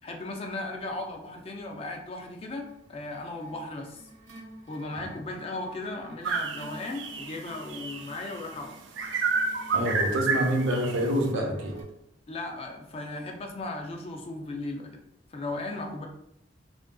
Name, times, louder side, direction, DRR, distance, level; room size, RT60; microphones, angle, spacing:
voice 1, 0.0-4.1 4.7-8.7 12.3-14.9 15.3-16.1, left 2 dB, 30° left, 2 dB, 0.4 m, -36 dB
sound 1, 2.7-11.8, left 1 dB, 40° right, 1.1 m, -46 dB
sound 2, 6.2-8.4 9.0-11.0, right 4 dB, 65° right, 0.3 m, -29 dB
voice 2, 9.7-11.7, equal, 85° right, 0 dB, 0.7 m, -27 dB
3.6 x 2.5 x 2.2 m, 0.78 s
head